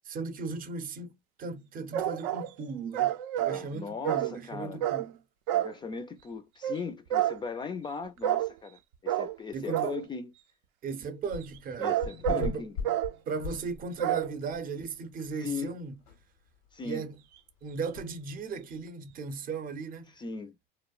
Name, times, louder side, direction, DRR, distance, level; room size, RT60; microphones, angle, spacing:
voice 1, 0.1-1.1 1.4-5.1 9.5-9.9 10.8-11.9 12.3-12.7 13.3-16.0 16.8-17.2 17.6-20.1, right 4 dB, 40° right, 0.6 m, -37 dB
sound 1, 1.9-2.5 2.9-3.6 4.0-4.4 4.8-5.1 5.5-5.7 6.6-6.8 7.1-7.4 8.2-8.5 9.1-9.4 9.7-10.0 11.6-12.5 12.8-13.1 14.0-14.3, right 12 dB, 85° right, 0.5 m, -28 dB
voice 2, 3.5-4.8 5.5-10.3 11.8-12.7 15.4-15.7 16.7-17.1 20.2-20.6, left 5 dB, 20° left, 0.3 m, -38 dB
sound 2, 11.3-11.7 12.0-14.1 14.5-14.6 15.2-15.3 15.5-15.6 16.1-16.2 17.9-18.1, left 4 dB, 85° left, 0.8 m, -37 dB
2.7 x 2.0 x 2.3 m
supercardioid pair, 115°, 21 cm